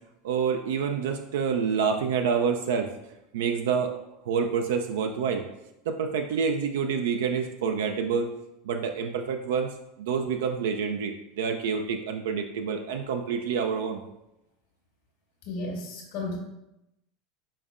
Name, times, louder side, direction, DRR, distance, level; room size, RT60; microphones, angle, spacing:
voice 1, 0.2-2.9 3.3-3.9 4.3-5.4 5.9-8.3 8.6-14.0, right 6 dB, 80° right, 4 dB, 0.3 m, -27 dB
voice 2, 15.5-16.4, left 2 dB, 70° left, -1 dB, 1.3 m, -33 dB
5.2 x 4.2 x 2.4 m, 0.89 s
hypercardioid pair, 100°, 0 cm